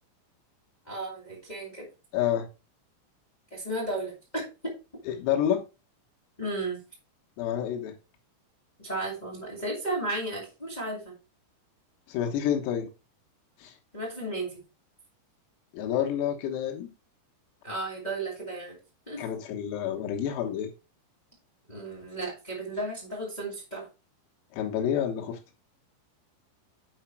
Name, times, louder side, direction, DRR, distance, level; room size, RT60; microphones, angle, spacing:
voice 1, 0.9-1.9 3.5-4.7 6.4-6.8 8.8-11.1 13.9-14.6 17.6-18.8 19.0-19.2 21.7-23.8, right 2 dB, 25° left, 0.8 m, -34 dB
voice 2, 2.1-2.5 5.1-5.6 7.4-7.9 12.1-12.9 13.6-13.7 15.7-16.9 19.2-20.7 24.5-25.4, left 10 dB, 85° left, 4.0 m, -28 dB
8.1 x 5.1 x 4.5 m
omnidirectional pair, 5.9 m